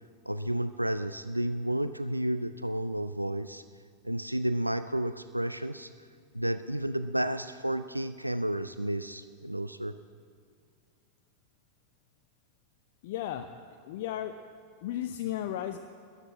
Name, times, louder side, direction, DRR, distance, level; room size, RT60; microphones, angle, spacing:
voice 1, 0.3-3.6 4.0-5.9 6.3-9.9, right 1 dB, 90° right, 12 dB, 0.4 m, -31 dB
voice 2, 13.0-13.5 13.8-14.5 14.8-15.8, left 11 dB, 50° left, 7 dB, 0.6 m, -34 dB
13.0 x 9.9 x 8.4 m, 2.1 s
figure-of-eight pair, 90°, 0 cm